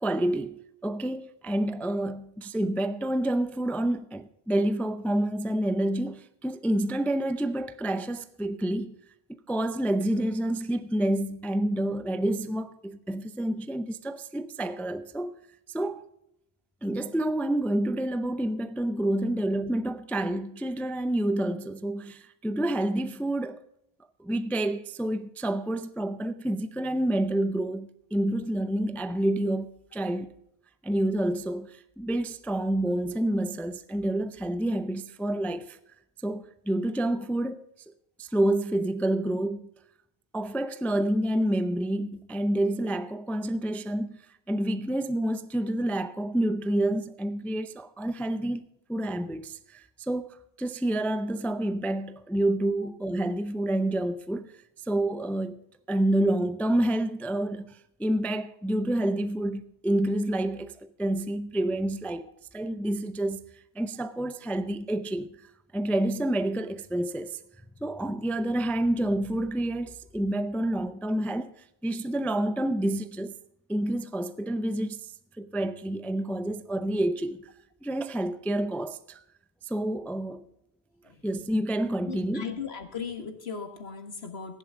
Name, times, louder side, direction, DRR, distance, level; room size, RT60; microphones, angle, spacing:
voice 1, 0.0-9.0 9.5-15.4 15.7-16.1 16.8-23.6 24.2-30.3 30.8-35.8 36.2-37.6 38.2-39.7 40.3-44.2 44.5-48.6 48.9-54.5 54.9-55.6 55.9-60.7 61.0-62.3 62.5-63.4 63.8-65.4 65.7-67.4 67.8-71.5 71.8-73.3 73.7-75.1 75.4-77.5 77.8-79.2 79.7-80.5 81.2-82.6, right 1 dB, ahead, 0.3 m, -28 dB
voice 2, 82.1-84.6, left 6 dB, 70° left, 1.9 m, -37 dB
15.5 x 10.5 x 3.8 m
omnidirectional pair, 1.1 m